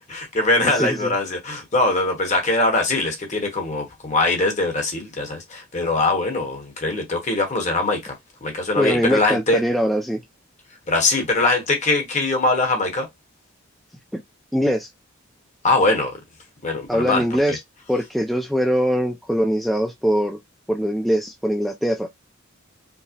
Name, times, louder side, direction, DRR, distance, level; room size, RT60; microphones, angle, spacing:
voice 1, 0.0-8.1 8.4-9.6 10.9-13.1 15.6-16.2 16.6-17.2, left 2 dB, 35° left, 1.0 m, -22 dB
voice 2, 0.6-1.1 8.8-10.2 14.5-14.9 16.9-17.6 17.9-20.4 20.7-22.1, equal, ahead, 0.3 m, -22 dB
4.6 x 2.0 x 2.8 m
head